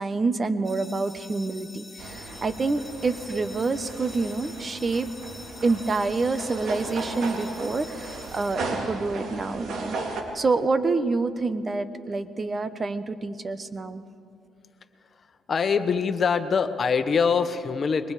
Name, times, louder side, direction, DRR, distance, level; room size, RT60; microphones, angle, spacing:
voice 1, 0.0-5.1 5.6-10.0 10.3-14.0, right 3 dB, 35° right, 12 dB, 1.1 m, -27 dB
sound 1, 0.6-9.3, left 3 dB, 10° left, 2.9 m, -46 dB
sound 2, 2.0-10.2, right 3 dB, 65° right, 3.1 m, -36 dB
voice 2, 15.5-18.1, left 6 dB, 45° left, 9 dB, 1.3 m, -23 dB
27.0 x 23.0 x 5.0 m, 2.5 s
cardioid pair, 90°, 0 cm